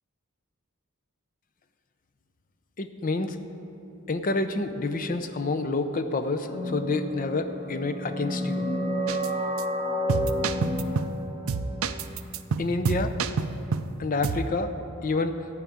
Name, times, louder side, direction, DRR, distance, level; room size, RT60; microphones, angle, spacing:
voice 1, 2.8-3.4 4.1-8.6 12.6-13.1 14.0-14.7 15.0-15.4, left 3 dB, 35° left, 9 dB, 0.5 m, -28 dB
sound 1, 6.5-11.9, left 1 dB, 90° left, 2.9 m, -30 dB
sound 2, 9.1-9.3 9.6-9.7 10.1-11.2 11.5-13.9 14.2-14.5, right 5 dB, 65° right, 0.4 m, -28 dB
14.0 x 4.8 x 8.5 m, 2.9 s
head